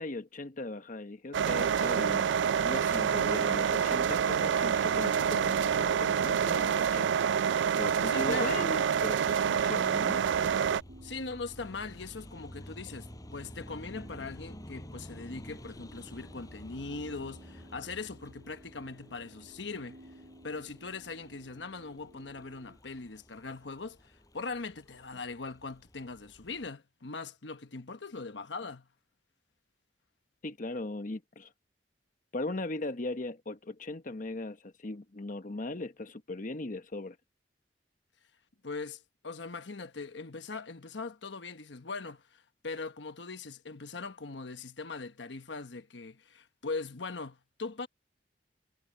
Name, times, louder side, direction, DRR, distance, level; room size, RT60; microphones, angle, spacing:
voice 1, 0.0-2.2 2.6-7.1 7.8-10.2 30.4-31.5 32.3-37.2, left 2 dB, 45° left, 1.0 m, -38 dB
sound 1, 1.3-10.8, right 7 dB, 80° right, 0.3 m, -27 dB
voice 2, 8.1-8.8 11.0-20.0 20.4-28.9 38.6-47.9, left 4 dB, 80° left, 1.1 m, -40 dB
sound 2, 9.5-22.8, equal, 60° right, 3.8 m, -57 dB
sound 3, 10.3-26.7, equal, 20° left, 6.7 m, -51 dB
head